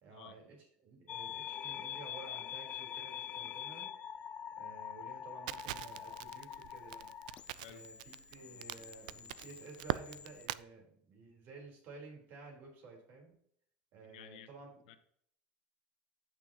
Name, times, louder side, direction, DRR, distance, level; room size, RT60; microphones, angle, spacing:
voice 1, 0.0-3.9 4.6-7.1 7.6-13.3 13.9-14.8, right 4 dB, 45° right, 0 dB, 3.8 m, -53 dB
sound 1, 1.1-10.5, left 10 dB, 30° left, 0.3 m, -45 dB
Crackle, 5.5-10.6, right 16 dB, 80° right, 0.4 m, -42 dB
voice 2, 14.0-14.5 14.9-15.0, left 11 dB, 85° left, 10 dB, 1.0 m, -53 dB
16.0 x 6.1 x 2.9 m, 0.67 s
supercardioid pair, 155°, 4 cm